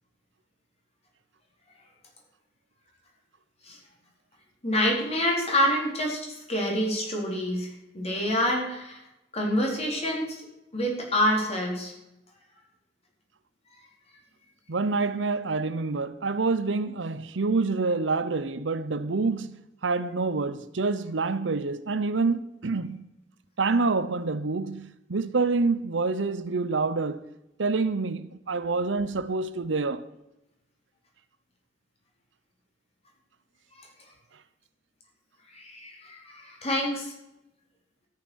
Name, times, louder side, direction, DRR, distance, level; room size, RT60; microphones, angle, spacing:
voice 1, 4.6-9.0 9.3-10.4 10.7-11.9 33.8-33.9 35.5-37.1, equal, 35° left, 4.1 m, -27 dB
voice 2, 14.7-23.0 23.6-27.2 27.6-30.1, right 3 dB, 85° right, 0.8 m, -27 dB
13.0 x 9.3 x 6.3 m
head